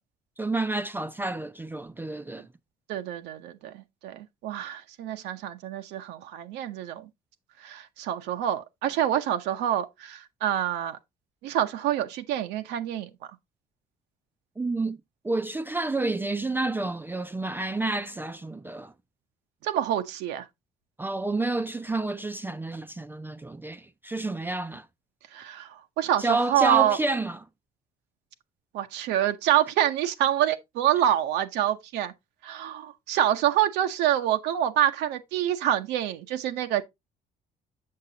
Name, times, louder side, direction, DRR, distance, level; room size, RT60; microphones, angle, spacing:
voice 1, 0.4-2.4 14.6-18.9 21.0-24.9 26.2-27.4, right 2 dB, 10° right, 0.3 m, -29 dB
voice 2, 2.9-7.1 7.6-11.0 11.4-13.1 19.6-20.4 25.3-27.0 28.7-32.1 32.4-36.8, right 11 dB, 85° right, 0.7 m, -26 dB
6.8 x 6.6 x 2.7 m
cardioid pair, 110°, 17 cm